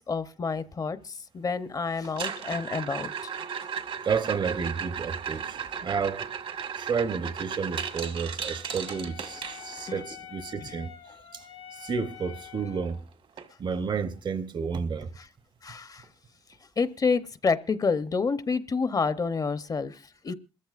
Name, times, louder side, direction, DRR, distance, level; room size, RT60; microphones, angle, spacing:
voice 1, 0.1-3.1 9.9-10.0 15.6-16.0 16.8-20.3, left 4 dB, 40° left, 0.7 m, -28 dB
sound 1, 2.0-10.0 12.3-12.4 12.6-13.0 13.4-13.5 14.0-14.1 16.0-16.1, right 7 dB, 70° right, 1.4 m, -35 dB
voice 2, 4.0-6.3 6.7-10.9 11.3-13.0 13.6-15.1, right 5 dB, 50° right, 0.8 m, -31 dB
Wind instrument woodwind instrument, 8.9-13.0, left 10 dB, 70° left, 0.9 m, -46 dB
27.0 x 14.0 x 2.5 m
cardioid pair, 95°, 10 cm